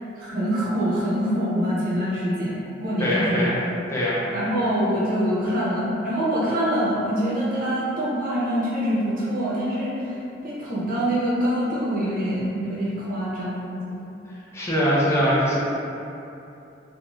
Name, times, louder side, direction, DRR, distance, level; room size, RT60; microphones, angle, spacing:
voice 1, 0.2-3.6 4.3-14.0, equal, 45° right, -8 dB, 0.7 m, -25 dB
voice 2, 3.0-3.5 3.9-4.2 14.5-15.6, equal, 15° left, -8 dB, 0.5 m, -22 dB
2.4 x 2.3 x 3.0 m, 2.9 s
head